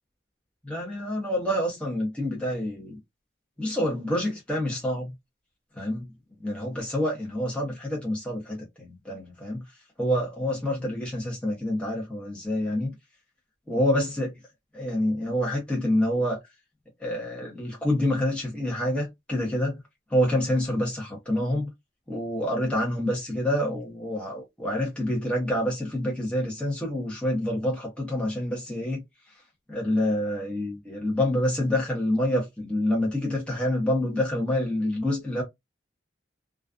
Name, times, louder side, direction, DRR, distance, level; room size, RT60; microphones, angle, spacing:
voice 1, 0.7-3.0 3.6-5.1 5.8-6.0 6.4-9.6 10.0-12.9 13.7-14.3 14.7-16.4 17.0-19.8 20.1-21.7 22.1-29.0 29.7-35.4, left 1 dB, 5° left, 0.8 m, -27 dB
2.3 x 2.3 x 2.4 m
head